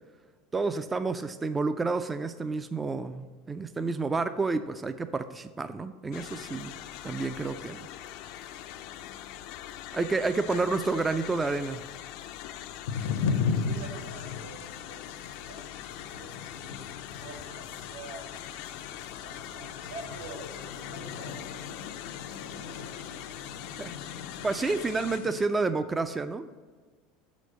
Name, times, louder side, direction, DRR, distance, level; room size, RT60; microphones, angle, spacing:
voice 1, 0.5-6.8 7.0-7.9 9.9-11.8 23.8-24.2 24.4-26.6, right 3 dB, 20° right, 10 dB, 0.3 m, -30 dB
sound 1, 6.1-25.2, left 12 dB, 65° left, 0.4 m, -42 dB
voice 2, 10.3-10.8 12.8-15.0 15.4-16.8 17.2-18.3 19.1-21.7 22.2-22.8 23.2-23.4, right 3 dB, 85° right, -1 dB, 1.8 m, -47 dB
sound 2, 12.9-25.5, left 5 dB, 85° left, 0.8 m, -37 dB
6.1 x 5.1 x 6.5 m, 1.4 s
supercardioid pair, 105°, 0 cm